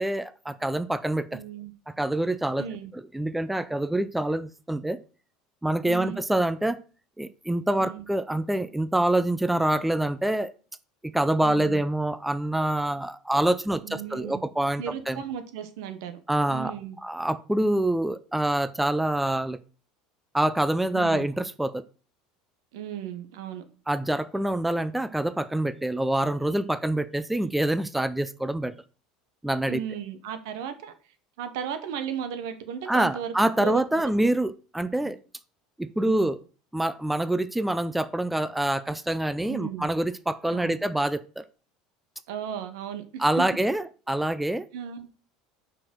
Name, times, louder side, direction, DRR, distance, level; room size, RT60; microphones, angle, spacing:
voice 1, 0.0-1.4 1.9-2.7 3.1-5.0 5.6-6.8 7.2-10.5 11.0-15.2 16.3-16.7 17.0-19.6 20.3-21.8 23.9-28.7 29.4-29.8 32.9-35.2 35.8-36.4 36.7-41.4 43.2-44.7, right 1 dB, 5° right, 0.6 m, -26 dB
voice 2, 1.3-1.7 2.6-2.9 5.8-6.2 7.8-8.0 11.4-11.8 13.8-14.4 14.8-16.2 16.5-17.0 20.9-21.3 22.7-23.6 29.7-30.9 31.4-34.0 35.0-35.1 36.0-36.3 39.5-39.9 40.5-40.8 42.3-43.2 44.7-45.1, right 8 dB, 70° right, 1.3 m, -36 dB
5.8 x 5.1 x 6.2 m
hypercardioid pair, 80°, 2 cm